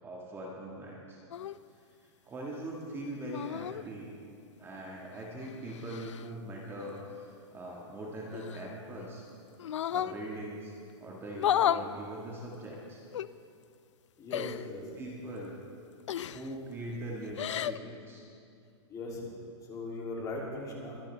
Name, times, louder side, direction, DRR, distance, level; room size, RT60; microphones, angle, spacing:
voice 1, 0.0-1.2 1.7-4.1 4.6-9.2 9.9-13.0 14.3-14.4 15.0-15.5 16.3-18.2, right 1 dB, 15° right, -3 dB, 1.6 m, -41 dB
sound 1, 1.3-1.6 3.2-3.8 5.2-6.3 8.3-9.1 9.6-10.2 11.3-11.9 13.1-13.3 14.3-14.7 16.1-16.5 17.2-17.8, left 10 dB, 85° left, 0.4 m, -32 dB
voice 2, 14.2-14.8 18.9-19.3 19.6-21.0, left 2 dB, 20° left, -2 dB, 2.7 m, -39 dB
22.5 x 10.5 x 3.4 m, 2.4 s
hypercardioid pair, 135°, 15 cm